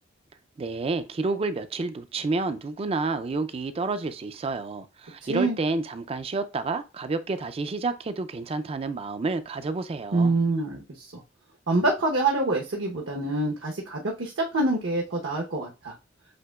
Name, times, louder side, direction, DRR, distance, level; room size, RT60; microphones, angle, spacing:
voice 1, 0.6-10.3, right 3 dB, 30° right, 0.3 m, -29 dB
voice 2, 10.1-11.2 11.7-15.9, right 2 dB, 70° right, 0.9 m, -26 dB
7.6 x 2.9 x 2.3 m
head